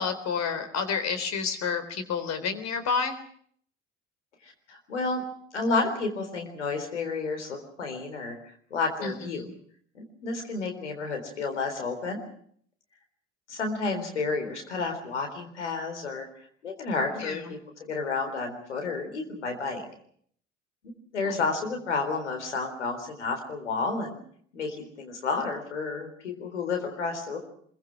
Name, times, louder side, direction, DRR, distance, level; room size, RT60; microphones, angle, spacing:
voice 1, 0.0-3.2 9.0-9.5 17.1-17.5 21.2-21.4, left 5 dB, 50° left, 10 dB, 3.8 m, -30 dB
voice 2, 4.4-5.2 5.5-8.4 8.7-9.5 9.9-12.2 13.5-16.3 16.6-19.8 21.1-24.2 24.5-27.4, left 4 dB, 80° left, 5 dB, 4.0 m, -31 dB
25.0 x 22.5 x 6.2 m, 0.63 s
figure-of-eight pair, 55°, 35 cm